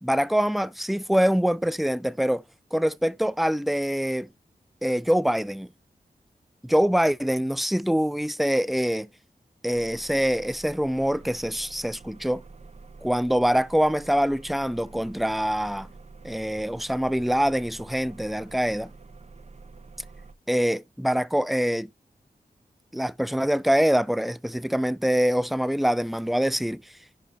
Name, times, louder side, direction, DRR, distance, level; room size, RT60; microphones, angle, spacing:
voice 1, 0.0-2.4 2.7-4.3 4.8-5.7 6.6-9.1 9.6-12.4 13.0-15.9 16.2-18.9 20.5-21.9 22.9-26.8, equal, ahead, 0.4 m, -24 dB
sound 1, 9.7-20.3, right 3 dB, 45° right, 1.0 m, -47 dB
10.5 x 3.6 x 4.0 m
wide cardioid pair, 75°, 16 cm